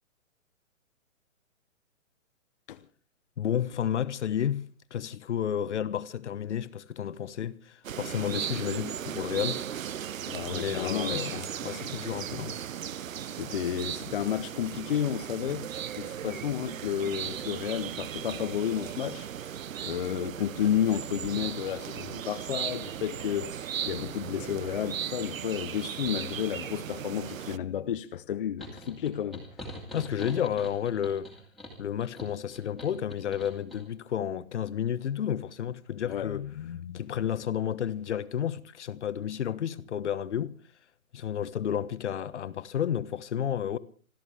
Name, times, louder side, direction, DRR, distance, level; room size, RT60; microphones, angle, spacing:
voice 1, 3.4-9.6 10.5-12.6 29.9-31.3 31.8-36.4 36.9-40.6 41.1-43.8, left 9 dB, 60° left, 1.1 m, -31 dB
sound 1, 7.8-27.6, right 9 dB, 75° right, 0.8 m, -37 dB
voice 2, 10.3-11.5 13.4-15.6 16.0-29.4 36.0-37.0, left 9 dB, 40° left, 0.8 m, -32 dB
sound 2, 28.6-33.8, left 1 dB, ahead, 2.2 m, -44 dB
26.5 x 13.5 x 3.5 m
hypercardioid pair, 160°, 40 cm